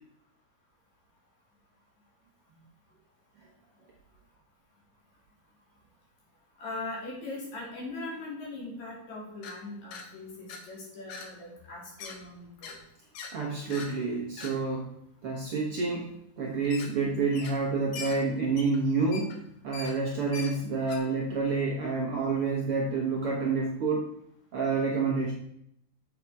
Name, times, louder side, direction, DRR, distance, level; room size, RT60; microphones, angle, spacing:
voice 1, 6.6-12.8, left 2 dB, 60° left, -3 dB, 3.8 m, -40 dB
sound 1, 9.4-9.6 9.9-10.1 10.5-10.6 11.1-11.3 11.6-12.2 12.6-12.8 13.2-13.3 13.7-13.9 14.4-14.5 16.6-17.0 17.3-17.7 17.9-21.0, left 4 dB, 80° left, 2.8 m, -41 dB
voice 2, 13.3-14.9 15.2-16.1 16.4-24.0 24.5-25.3, right 4 dB, 55° right, -3 dB, 1.8 m, -28 dB
7.5 x 7.3 x 4.7 m, 0.74 s
omnidirectional pair, 3.7 m